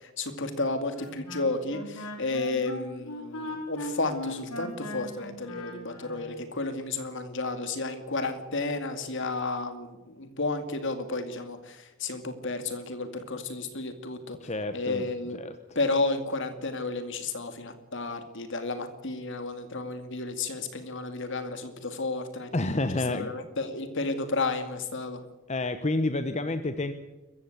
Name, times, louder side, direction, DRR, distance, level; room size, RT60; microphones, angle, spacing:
voice 1, 0.0-14.4 14.7-15.4 15.7-22.5 23.1-25.2, left 3 dB, 55° left, 8 dB, 2.5 m, -32 dB
Wind instrument woodwind instrument, 0.9-6.3, left 1 dB, 85° left, 4.4 m, -39 dB
voice 2, 14.4-15.1 15.3-15.5 22.5-23.3 25.5-26.9, left 2 dB, 30° left, 9 dB, 1.0 m, -29 dB
22.0 x 15.0 x 9.1 m, 1.1 s
head